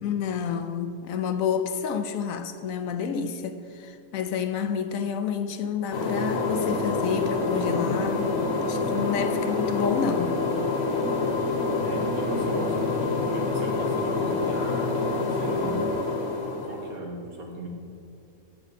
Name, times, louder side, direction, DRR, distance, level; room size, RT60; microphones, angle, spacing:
voice 1, 0.0-8.4 8.6-10.4, left 7 dB, 75° left, 8 dB, 1.0 m, -29 dB
sound 1, 5.9-17.0, left 3 dB, 50° left, 1.3 m, -27 dB
voice 2, 11.8-15.9 16.2-16.4 16.6-17.7, right 1 dB, 80° right, 0 dB, 1.8 m, -37 dB
10.0 x 8.3 x 4.1 m, 2.6 s
omnidirectional pair, 1.5 m